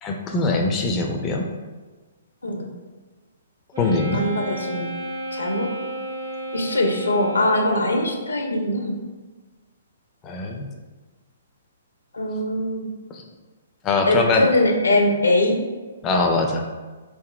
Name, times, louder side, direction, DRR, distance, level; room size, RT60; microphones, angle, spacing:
voice 1, 0.0-1.4 3.8-4.2 10.2-10.6 13.1-13.2 13.8-14.5 16.0-16.6, left 3 dB, 20° left, 2 dB, 0.4 m, -22 dB
Wind instrument woodwind instrument, 3.7-8.4, right 1 dB, 80° right, 1.2 m, -32 dB
voice 2, 4.1-4.9 5.3-5.7 6.5-9.0 12.1-12.9 14.1-15.6, left 1 dB, 80° left, 2 dB, 0.6 m, -22 dB
4.1 x 3.6 x 2.3 m, 1.3 s
figure-of-eight pair, 125°, 0 cm